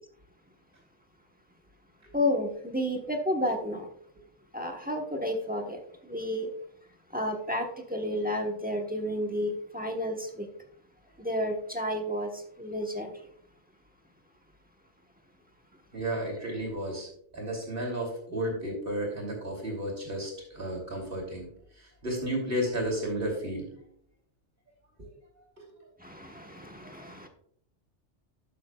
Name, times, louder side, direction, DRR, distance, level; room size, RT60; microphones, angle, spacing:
voice 1, 2.1-3.9 4.5-5.8 6.1-6.5 7.1-10.5 11.2-13.1 26.0-27.3, left 1 dB, 10° right, 2 dB, 1.0 m, -31 dB
voice 2, 15.9-17.1 17.3-21.5 22.0-23.6 25.0-25.1, right 1 dB, 50° right, -1 dB, 3.1 m, -32 dB
12.5 x 7.7 x 2.3 m, 0.67 s
omnidirectional pair, 1.2 m